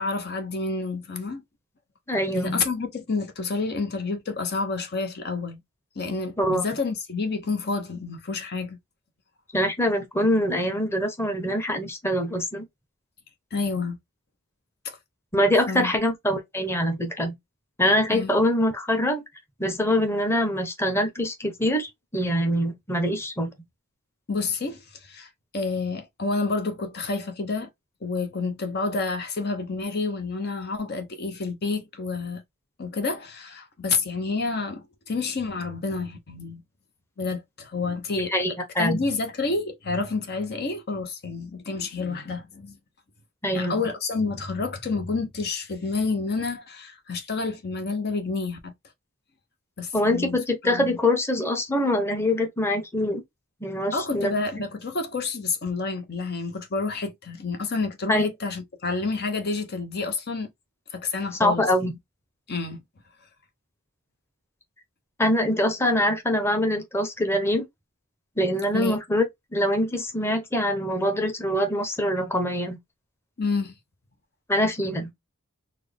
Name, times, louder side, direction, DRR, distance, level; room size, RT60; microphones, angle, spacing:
voice 1, 0.0-1.4 2.3-5.6 6.0-8.8 13.5-14.0 14.8-15.0 15.7-15.9 18.1-18.3 24.3-27.7 28.0-32.4 32.8-36.6 37.2-38.3 38.8-42.8 43.5-48.7 49.8-51.0 53.9-60.5 60.9-61.9 62.5-62.8 68.7-69.0 73.4-73.7, left 4 dB, 50° left, 0.9 m, -29 dB
voice 2, 2.1-2.6 6.4-6.6 9.5-12.6 15.3-17.3 17.8-19.2 19.6-23.5 38.2-39.0 43.4-43.8 49.9-53.2 53.6-54.3 58.1-58.3 61.4-61.9 65.2-67.7 68.4-69.3 69.5-72.8 74.5-75.1, left 1 dB, 10° left, 0.9 m, -24 dB
4.3 x 2.3 x 3.3 m
head